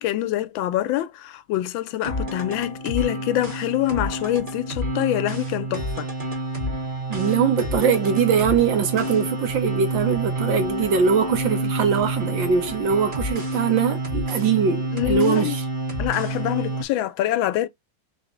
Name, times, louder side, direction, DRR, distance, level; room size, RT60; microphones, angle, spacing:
voice 1, 0.0-6.1 14.9-15.6 16.0-17.7, left 14 dB, 85° left, 1.4 m, -25 dB
sound 1, 2.0-16.8, right 2 dB, 30° right, 1.4 m, -28 dB
voice 2, 7.1-15.6, right 6 dB, 75° right, 1.8 m, -22 dB
4.0 x 3.2 x 2.9 m
omnidirectional pair, 2.1 m